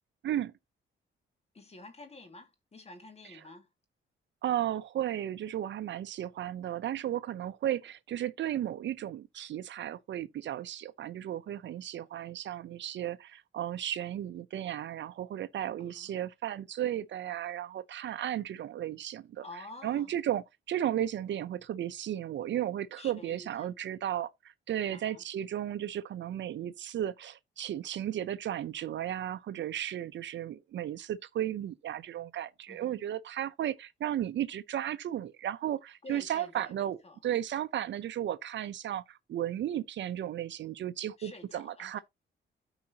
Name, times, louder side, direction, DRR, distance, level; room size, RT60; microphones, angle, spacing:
voice 1, 1.5-3.7 15.8-16.1 19.4-20.1 23.0-23.7 24.9-25.2 32.7-33.1 36.0-37.2 41.2-42.0, left 2 dB, 30° left, 2.2 m, -50 dB
voice 2, 4.4-19.4 19.8-24.3 24.7-42.0, right 11 dB, 65° right, 0.6 m, -34 dB
13.0 x 4.9 x 2.8 m
cardioid pair, 90°, 21 cm